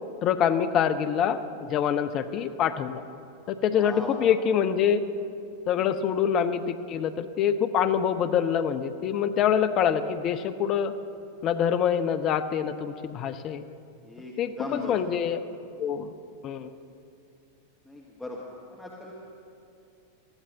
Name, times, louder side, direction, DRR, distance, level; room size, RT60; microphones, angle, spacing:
voice 1, 0.2-3.0 3.5-5.0 5.7-10.9 11.4-13.6 14.4-15.4 15.8-16.1 16.4-16.7, left 8 dB, 35° left, 10 dB, 0.5 m, -25 dB
voice 2, 3.7-4.3 14.0-15.0 17.8-18.4 18.7-19.1, left 1 dB, 5° left, -3 dB, 1.3 m, -39 dB
20.0 x 14.0 x 2.9 m, 2.6 s
figure-of-eight pair, 90°, 0 cm